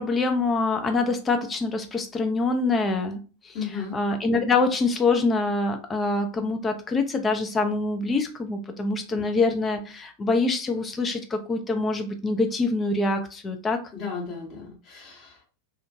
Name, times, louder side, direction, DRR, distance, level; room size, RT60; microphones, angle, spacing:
voice 1, 0.0-3.5 3.9-13.8, left 3 dB, 20° left, 5 dB, 0.3 m, -25 dB
voice 2, 3.5-4.0 9.1-9.3 13.9-15.5, left 6 dB, 35° left, -2 dB, 1.0 m, -35 dB
2.4 x 2.1 x 2.6 m, 0.35 s
figure-of-eight pair, 90°, 0 cm